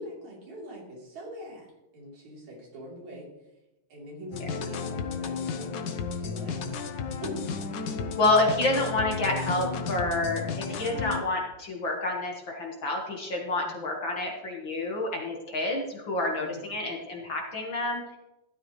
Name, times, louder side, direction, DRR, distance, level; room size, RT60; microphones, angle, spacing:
voice 1, 0.0-1.7 1.9-3.3 3.9-6.7 7.2-7.5 13.6-13.7 16.4-16.7, equal, 70° right, -3 dB, 4.9 m, -42 dB
sound 1, 4.3-11.2, left 5 dB, 80° left, 1.0 m, -33 dB
voice 2, 8.2-18.2, left 2 dB, 45° left, -1 dB, 2.0 m, -28 dB
16.5 x 12.5 x 3.2 m, 0.95 s
omnidirectional pair, 3.3 m